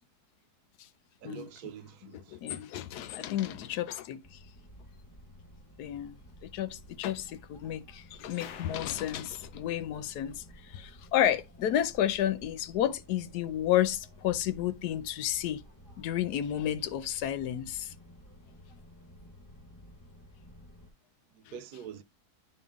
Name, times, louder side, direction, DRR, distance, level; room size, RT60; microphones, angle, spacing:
voice 1, 1.2-2.4 21.3-22.0, right 8 dB, 75° right, 1.1 m, -45 dB
voice 2, 2.1-4.4 5.8-6.1 6.4-15.6 16.0-17.9 21.5-21.6, left 11 dB, 80° left, 1.1 m, -31 dB
sound 1, 4.2-20.9, equal, 10° left, 1.2 m, -53 dB
sound 2, 8.4-10.7, left 8 dB, 65° left, 0.7 m, -50 dB
9.5 x 3.6 x 3.5 m
omnidirectional pair, 1.7 m